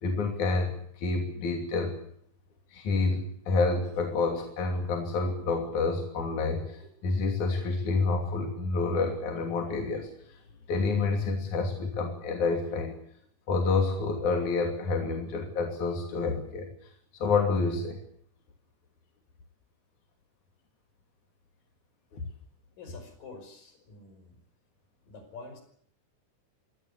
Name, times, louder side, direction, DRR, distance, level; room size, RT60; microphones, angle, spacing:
voice 1, 0.0-2.0 2.7-10.1 10.7-13.0 13.5-16.7 17.2-18.0 22.1-22.2, left 3 dB, 65° left, 3 dB, 4.3 m, -28 dB
voice 2, 22.8-24.4 25.1-25.6, left 3 dB, 85° left, 7 dB, 7.1 m, -47 dB
25.0 x 18.0 x 8.2 m, 0.65 s
omnidirectional pair, 3.8 m